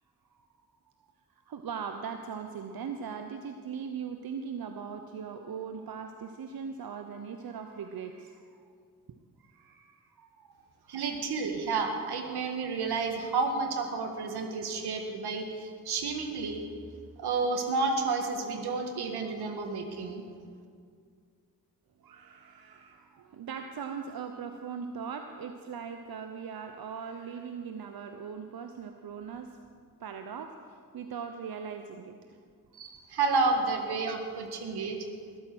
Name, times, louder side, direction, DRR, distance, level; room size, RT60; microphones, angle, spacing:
voice 1, 1.5-8.6 9.4-11.0 22.0-29.6 30.0-32.4 33.7-33.8 34.3-34.5, right 6 dB, 65° right, 6 dB, 1.0 m, -40 dB
voice 2, 10.9-16.7 17.2-20.2 32.7-35.0, right 4 dB, 80° right, 5 dB, 1.8 m, -31 dB
20.5 x 9.0 x 6.2 m, 2.2 s
supercardioid pair, 40°, 38 cm